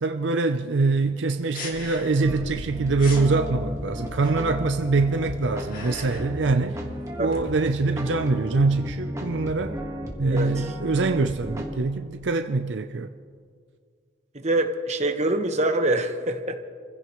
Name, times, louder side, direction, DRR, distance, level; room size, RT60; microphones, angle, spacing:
voice 1, 0.0-6.8 7.2-9.8 10.2-13.1, right 3 dB, 75° right, 0.6 m, -24 dB
sound 1, 1.5-2.4 2.6-2.7 3.0-3.3 4.2-4.7 5.3-6.4 6.7-8.3, left 3 dB, 50° left, 2.3 m, -40 dB
sound 2, 2.2-11.8, equal, 15° right, 1.6 m, -34 dB
voice 2, 14.3-16.6, right 2 dB, 35° right, 1.2 m, -24 dB
28.0 x 16.0 x 3.1 m
head